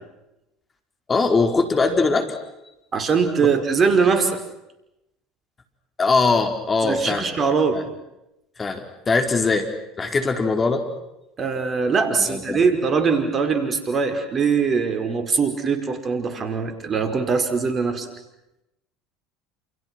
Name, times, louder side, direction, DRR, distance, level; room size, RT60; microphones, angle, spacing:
voice 1, 1.1-2.4 3.4-3.6 6.0-7.3 7.7-7.8 8.6-9.7 10.0-10.8 12.3-12.6, left 4 dB, 25° left, 6 dB, 4.8 m, -21 dB
voice 2, 2.9-4.4 6.8-7.8 11.4-18.1, right 5 dB, 35° right, 7 dB, 5.2 m, -21 dB
29.0 x 28.5 x 6.3 m, 0.90 s
hypercardioid pair, 75°, 0 cm